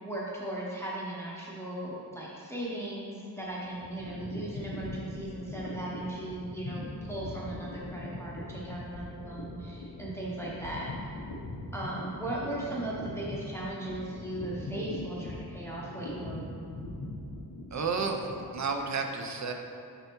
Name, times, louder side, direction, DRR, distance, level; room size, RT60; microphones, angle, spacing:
voice 1, 0.0-11.1 11.7-16.5, right 1 dB, 5° left, -6 dB, 0.7 m, -37 dB
sound 1, 3.4-18.8, left 1 dB, 90° left, 0.9 m, -41 dB
voice 2, 17.7-19.5, right 4 dB, 45° right, 4 dB, 0.5 m, -31 dB
6.8 x 5.5 x 3.0 m, 2.5 s
wide cardioid pair, 155°, 39 cm